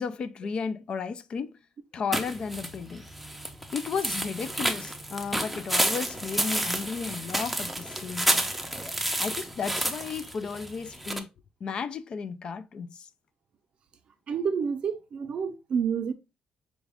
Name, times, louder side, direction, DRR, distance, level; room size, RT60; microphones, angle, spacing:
voice 1, 0.0-1.6 1.9-3.1 3.7-8.5 9.2-11.3 11.6-13.1, left 5 dB, 45° left, 0.4 m, -34 dB
sound 1, 2.1-11.2, right 1 dB, ahead, 0.6 m, -30 dB
voice 2, 14.3-16.1, right 6 dB, 50° right, 0.6 m, -29 dB
5.1 x 2.4 x 3.4 m
cardioid pair, 125°, 2 cm